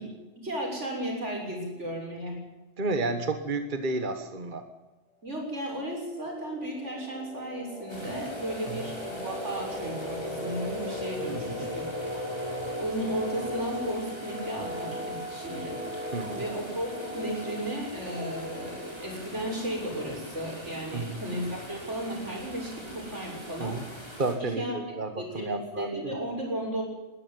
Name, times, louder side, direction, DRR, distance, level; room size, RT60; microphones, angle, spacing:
voice 1, 0.4-2.4 5.2-15.8 16.4-23.8 24.6-24.7 25.2-26.8, right 1 dB, 85° right, 0 dB, 7.3 m, -35 dB
voice 2, 2.8-4.6 8.7-8.9 11.3-11.7 16.1-16.4 20.9-21.2 23.6-23.8 24.2-26.2, right 3 dB, 45° right, 8 dB, 1.6 m, -32 dB
sound 1, 6.0-20.4, equal, 35° left, 4.0 m, -38 dB
sound 2, 7.9-24.3, equal, 20° right, 5.8 m, -44 dB
21.5 x 13.0 x 9.6 m, 1.1 s
omnidirectional pair, 1.2 m